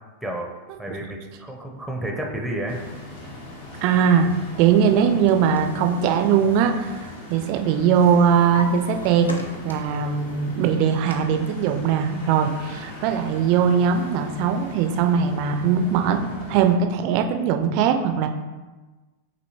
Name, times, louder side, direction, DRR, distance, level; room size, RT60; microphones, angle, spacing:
voice 1, 0.2-0.5 0.8-2.8, right 1 dB, ahead, 1 dB, 0.6 m, -30 dB
sound 1, 2.7-16.7, left 1 dB, 55° left, 1.0 m, -39 dB
voice 2, 3.8-4.3 4.6-6.9 7.3-18.3, right 7 dB, 45° right, 6 dB, 0.4 m, -20 dB
Drawer open or close, 4.9-7.4 7.7-10.0 10.4-11.1, equal, 80° left, 0.5 m, -38 dB
6.3 x 2.7 x 2.8 m, 1.2 s
figure-of-eight pair, 90°, 0 cm